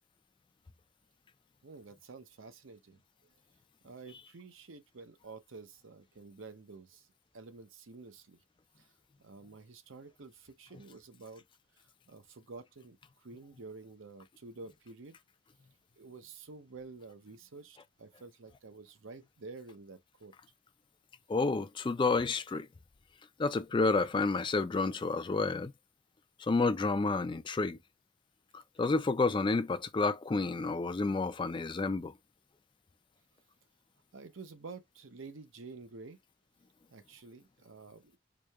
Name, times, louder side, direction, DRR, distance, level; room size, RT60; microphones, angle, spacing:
voice 1, 1.6-3.0 3.8-7.1 7.3-8.4 8.8-8.9 9.2-11.4 12.1-13.0 13.2-15.2 16.0-20.3 34.1-36.2 36.9-38.2, right 3 dB, 70° right, 0.7 m, -50 dB
voice 2, 21.3-22.7 23.4-25.7 26.4-27.8 28.5-32.1, left 3 dB, 25° left, 0.3 m, -30 dB
4.8 x 2.7 x 2.3 m
head